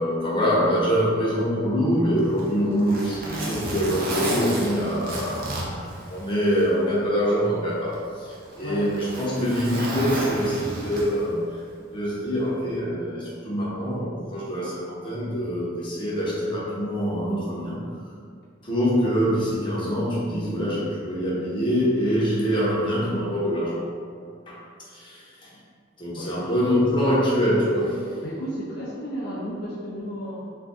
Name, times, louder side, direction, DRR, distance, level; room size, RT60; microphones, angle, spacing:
voice 1, 0.0-11.6 11.9-18.0 18.6-23.8 24.5-24.6 24.9-25.5 26.0-28.2, equal, 25° left, -7 dB, 0.7 m, -25 dB
Zipper (clothing), 2.2-6.7 7.0-7.1 7.9-11.4 12.6-12.8, right 1 dB, 50° right, 0.6 m, -31 dB
voice 2, 26.1-26.5 28.2-30.4, equal, 60° left, -5 dB, 0.4 m, -33 dB
2.6 x 2.2 x 3.6 m, 2.1 s
head